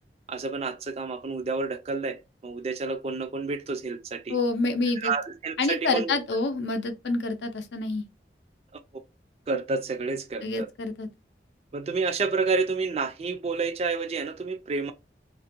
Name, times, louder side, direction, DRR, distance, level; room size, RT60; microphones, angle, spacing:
voice 1, 0.3-4.4 5.0-6.2 9.5-10.7 11.7-14.9, right 4 dB, 35° right, 0.3 m, -29 dB
voice 2, 4.3-5.1 5.6-8.0 10.4-11.1, left 3 dB, 85° left, 0.5 m, -27 dB
2.4 x 2.1 x 2.8 m
head